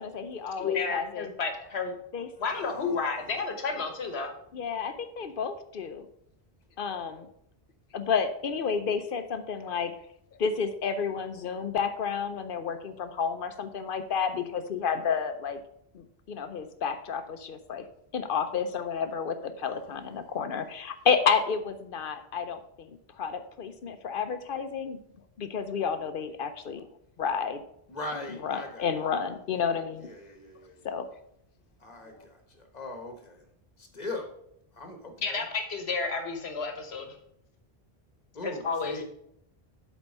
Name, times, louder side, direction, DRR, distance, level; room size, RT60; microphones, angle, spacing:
voice 1, 0.0-1.3 2.1-2.3 4.5-6.1 6.8-7.3 7.9-9.9 10.4-15.6 15.9-17.8 18.1-25.0 25.4-26.8 27.2-27.6 28.1-30.1 30.8-31.1 32.1-32.2, left 6 dB, 60° left, 9 dB, 0.8 m, -31 dB
voice 2, 0.6-2.0 2.4-4.3 35.2-37.1 38.4-39.0, left 4 dB, 80° left, 5 dB, 1.4 m, -31 dB
voice 3, 2.5-3.2 19.9-20.3 27.9-28.9 30.0-30.9 31.8-33.4 33.8-34.3 34.7-35.4 38.3-39.0, left 2 dB, 40° left, 4 dB, 1.2 m, -41 dB
8.0 x 4.1 x 5.3 m, 0.74 s
omnidirectional pair, 1.1 m